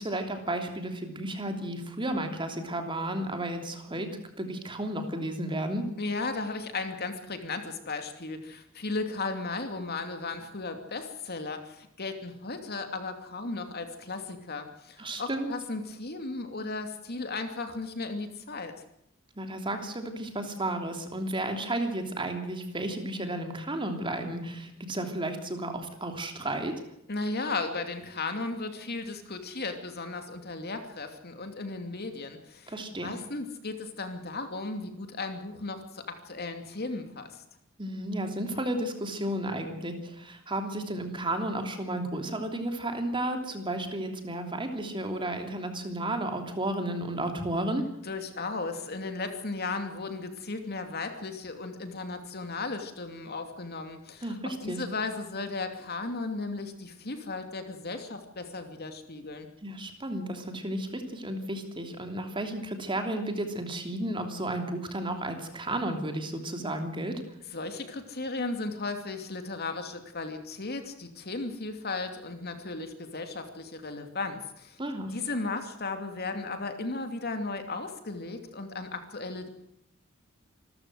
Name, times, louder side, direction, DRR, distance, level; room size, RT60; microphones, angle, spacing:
voice 1, 0.0-4.1 4.4-5.8 15.0-15.5 19.4-26.7 32.7-33.2 37.8-47.8 54.2-54.8 59.6-67.2 74.8-75.1, right 1 dB, 25° right, 5 dB, 3.1 m, -33 dB
voice 2, 6.0-18.7 27.1-32.7 33.0-37.4 48.0-59.5 67.5-74.8 75.1-79.5, left 3 dB, 50° left, 6 dB, 2.7 m, -35 dB
26.0 x 14.0 x 8.0 m, 0.79 s
head